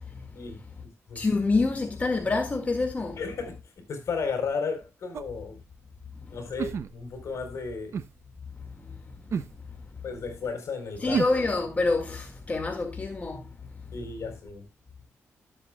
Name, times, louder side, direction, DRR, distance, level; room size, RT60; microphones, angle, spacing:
voice 1, 0.4-1.2 3.2-5.6 6.3-8.0 10.0-11.2 13.9-14.7, left 5 dB, 70° left, 4.0 m, -34 dB
voice 2, 1.2-3.2 11.0-13.4, left 3 dB, 30° left, 2.0 m, -26 dB
sound 1, 5.1-5.4 6.6-7.2 7.9-8.1 9.3-9.5 11.1-11.4, right 6 dB, 60° right, 0.8 m, -30 dB
16.5 x 7.7 x 2.3 m
cardioid pair, 90°, 5 cm